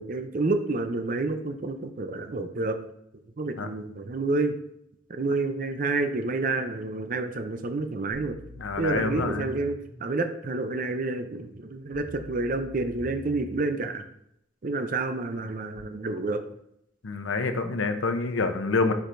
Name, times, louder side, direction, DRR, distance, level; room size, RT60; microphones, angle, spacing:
voice 1, 0.0-2.8 3.4-4.5 5.2-8.4 8.8-9.7 10.0-14.0 14.6-16.4, right 3 dB, 45° right, 7 dB, 0.5 m, -29 dB
sound 1, 8.1-10.1 11.9-13.9 15.8-15.9, equal, 65° right, 2.6 m, -45 dB
voice 2, 8.6-9.5 17.0-18.9, left 3 dB, 85° left, 8 dB, 0.7 m, -27 dB
10.0 x 4.7 x 2.6 m, 0.75 s
head